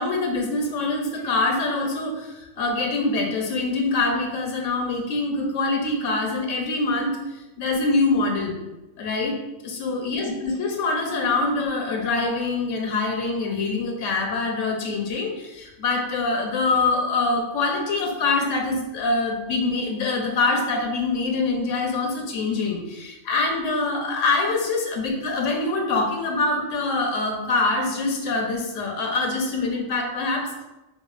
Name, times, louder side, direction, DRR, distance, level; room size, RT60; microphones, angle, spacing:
voice 1, 0.0-7.2 7.6-8.6 9.0-9.3 9.6-30.6, left 3 dB, 85° left, 1 dB, 1.0 m, -24 dB
4.7 x 2.0 x 2.4 m, 1.0 s
omnidirectional pair, 1.3 m